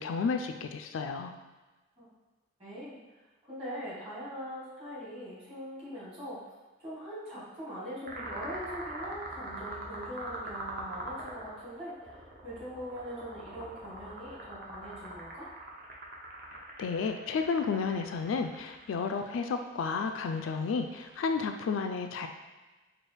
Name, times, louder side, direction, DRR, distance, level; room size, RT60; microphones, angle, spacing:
voice 1, 0.0-1.3 16.5-22.3, left 5 dB, 75° left, 6 dB, 0.3 m, -32 dB
voice 2, 2.6-3.0 3.4-6.5 6.8-15.5, equal, 30° right, -8 dB, 1.5 m, -42 dB
sound 1, 8.1-21.3, right 2 dB, 45° right, 0.7 m, -43 dB
4.5 x 2.4 x 3.2 m, 1.2 s
head